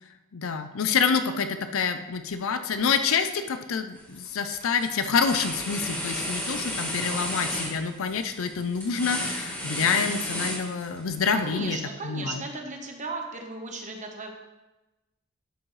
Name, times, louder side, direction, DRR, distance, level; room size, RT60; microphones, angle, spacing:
voice 1, 0.3-11.8 12.0-12.4, left 5 dB, 65° left, 9 dB, 0.5 m, -27 dB
sound 1, 4.0-4.3 4.6-11.1, left 1 dB, 10° left, 2.1 m, -33 dB
voice 2, 11.3-14.3, right 3 dB, 35° right, 3 dB, 1.2 m, -36 dB
12.0 x 6.2 x 3.2 m, 1.1 s
head